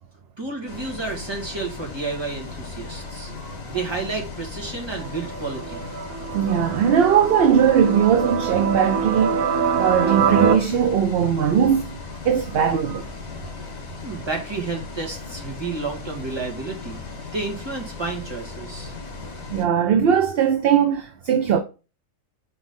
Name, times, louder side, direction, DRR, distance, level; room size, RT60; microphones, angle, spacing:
voice 1, 0.4-3.3 3.7-5.8 14.0-17.0 17.3-18.9, right 3 dB, 20° right, 1.9 m, -31 dB
Bus, 0.7-19.7, left 3 dB, 85° left, 1.9 m, -37 dB
sound 1, 5.0-10.5, right 6 dB, 85° right, 1.2 m, -25 dB
voice 2, 6.3-12.0 12.2-13.1 19.5-21.6, right 8 dB, 55° right, 0.7 m, -19 dB
4.8 x 4.2 x 5.3 m
omnidirectional pair, 1.4 m